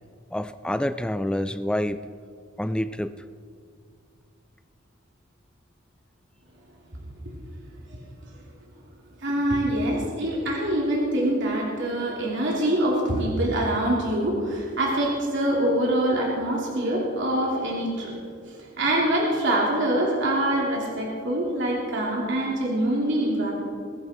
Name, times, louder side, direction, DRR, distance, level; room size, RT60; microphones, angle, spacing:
voice 1, 0.3-2.0 2.6-3.2, left 1 dB, 5° left, 12 dB, 0.3 m, -27 dB
voice 2, 9.2-18.1 18.5-23.5, right 1 dB, 65° right, -3 dB, 2.9 m, -24 dB
21.5 x 11.5 x 4.3 m, 2.3 s
head